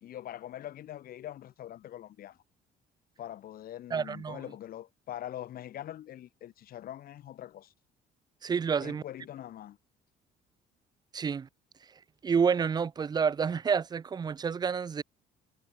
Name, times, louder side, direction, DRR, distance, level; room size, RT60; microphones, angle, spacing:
voice 1, 0.0-2.4 3.2-7.7 8.8-9.8, left 12 dB, 60° left, 1.8 m, -43 dB
voice 2, 3.9-4.4 8.4-9.0 11.1-11.5 12.2-15.0, right 6 dB, 25° right, 0.4 m, -29 dB
cardioid pair, 110°, 17 cm